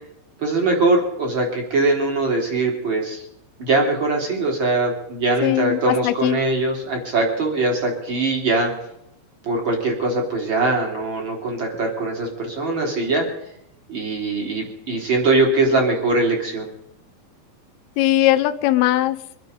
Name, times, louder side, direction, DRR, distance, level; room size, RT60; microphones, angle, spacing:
voice 1, 0.4-3.2 3.6-8.7 9.4-13.2 13.9-16.7, right 2 dB, 30° right, 0 dB, 3.4 m, -21 dB
voice 2, 5.4-6.4 18.0-19.2, left 15 dB, 85° left, 9 dB, 2.3 m, -19 dB
24.0 x 11.0 x 5.2 m, 0.78 s
omnidirectional pair, 5.3 m